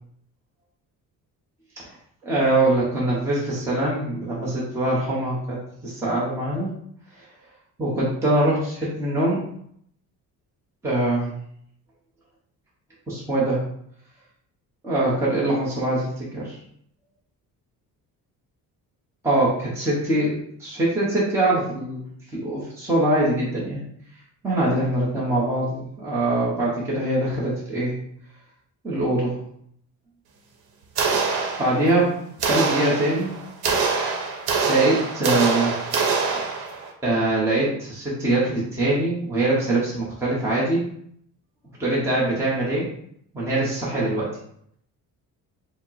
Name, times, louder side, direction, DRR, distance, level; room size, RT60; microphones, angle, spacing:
voice 1, 2.2-6.7 7.2-7.3 7.8-9.4 10.8-11.3 13.1-13.6 14.8-16.6 19.2-22.0 22.3-23.8 24.4-28.0 28.8-29.4 31.6-32.1 32.4-33.3 34.7-35.8 36.3-36.4 37.0-40.8 41.8-42.9 43.3-44.3, right 2 dB, 5° right, -7 dB, 0.7 m, -23 dB
sound 1, 31.0-32.0 32.4-36.9, right 4 dB, 90° right, 0.9 m, -24 dB
4.8 x 2.0 x 4.0 m, 0.69 s
cardioid pair, 180°, 36 cm